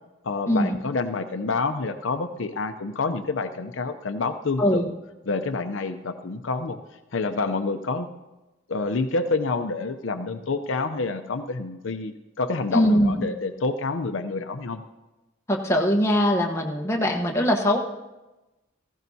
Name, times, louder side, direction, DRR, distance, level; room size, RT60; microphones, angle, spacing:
voice 1, 0.2-4.9 5.2-6.8 7.1-8.1 8.7-14.8, left 3 dB, 70° left, 9 dB, 0.6 m, -28 dB
voice 2, 12.7-13.2 15.5-17.8, equal, 15° left, 0 dB, 1.1 m, -21 dB
16.5 x 15.0 x 2.8 m, 1.1 s
head